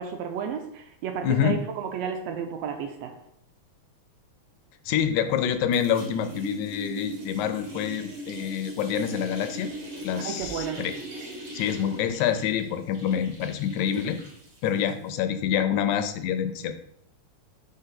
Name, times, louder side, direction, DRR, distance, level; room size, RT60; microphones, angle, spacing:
voice 1, 0.0-3.1 10.1-10.8, right 7 dB, 75° right, 5 dB, 1.7 m, -32 dB
voice 2, 1.2-1.6 4.9-9.7 10.0-10.9 11.5-14.2 14.6-16.7, left 9 dB, 85° left, 9 dB, 2.0 m, -26 dB
sound 1, 4.9-5.5 5.7-15.1, right 2 dB, 50° right, 1.0 m, -40 dB
4.6 x 3.9 x 5.6 m, 0.71 s
omnidirectional pair, 3.4 m